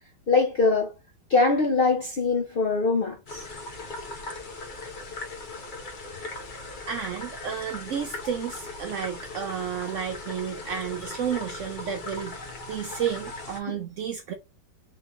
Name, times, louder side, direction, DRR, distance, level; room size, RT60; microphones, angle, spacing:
voice 1, 0.3-0.9 1.3-3.5 13.7-13.8, left 3 dB, 75° left, 0.5 m, -23 dB
sound 1, 3.3-13.6, left 2 dB, 35° left, 0.8 m, -39 dB
voice 2, 6.9-12.4 12.7-14.3, right 8 dB, 70° right, 0.7 m, -31 dB
4.3 x 3.1 x 3.4 m
omnidirectional pair, 1.9 m